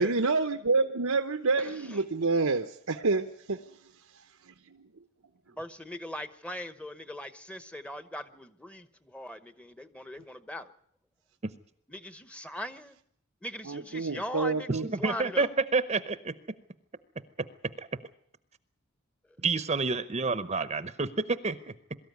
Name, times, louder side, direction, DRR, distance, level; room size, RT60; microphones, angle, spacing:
voice 1, 0.0-3.8 4.5-4.9 13.6-14.9, right 3 dB, 85° right, 8 dB, 0.9 m, -28 dB
voice 2, 1.6-2.0 5.5-10.7 11.9-13.0 13.4-15.5, left 1 dB, 5° left, 12 dB, 1.0 m, -40 dB
voice 3, 14.8-16.3 17.8-17.9 19.4-21.7, right 4 dB, 30° right, 13 dB, 0.8 m, -29 dB
23.0 x 13.5 x 9.5 m, 0.67 s
head